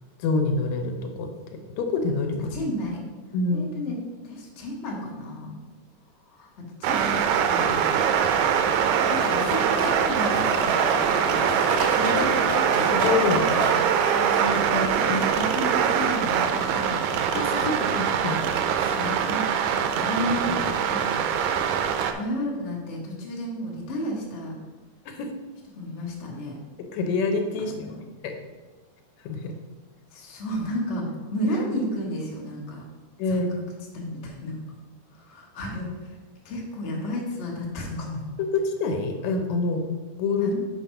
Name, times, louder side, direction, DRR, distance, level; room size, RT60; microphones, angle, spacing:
voice 1, 0.2-1.3 1.8-2.5 3.3-3.7 12.0-13.4 14.1-15.2 17.3-18.4 25.1-25.3 26.8-27.7 28.2-28.4 29.2-29.5 33.2-33.6 38.5-39.8 40.2-40.6, left 3 dB, 75° left, 4 dB, 2.0 m, -27 dB
voice 2, 2.5-3.0 3.5-4.0 4.2-5.6 6.4-6.5 6.8-7.0 7.5-8.1 9.1-11.4 13.3-13.9 14.7-17.3 18.8-21.2 22.1-24.5 25.8-26.6 27.7-28.0 30.1-31.0 31.3-32.8 33.3-33.6 33.9-34.5 35.2-35.9 36.4-38.2 40.4-40.6, left 1 dB, 45° left, -3 dB, 0.8 m, -32 dB
sound 1, 6.8-22.1, right 7 dB, 90° right, 2.0 m, -23 dB
Rattle, 9.1-15.8, right 1 dB, 75° right, 3.0 m, -31 dB
5.7 x 4.5 x 5.7 m, 1.3 s
omnidirectional pair, 3.3 m